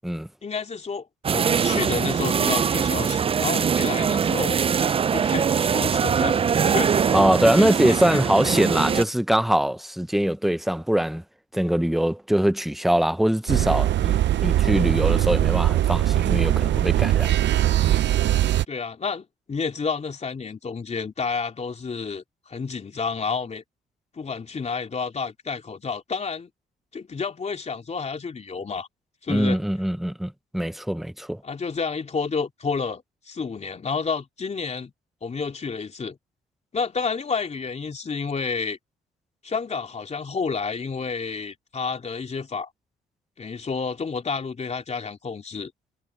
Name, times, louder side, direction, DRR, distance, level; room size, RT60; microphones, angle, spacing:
voice 1, 0.4-1.1 1.3-4.6 5.1-6.4 6.6-7.1 7.5-8.2 18.7-23.6 24.1-26.5 26.9-28.9 29.2-29.6 31.4-34.9 35.2-36.2 36.7-38.8 39.4-42.7 43.4-45.7, left 5 dB, 35° left, 3.2 m, -30 dB
sound 1, 1.2-9.0, right 7 dB, 30° right, 0.4 m, -22 dB
voice 2, 7.1-11.2 11.5-17.3 29.3-31.4, equal, ahead, 0.7 m, -23 dB
sound 2, 13.5-18.6, right 12 dB, 65° right, 0.7 m, -21 dB
cardioid pair, 90°, 20 cm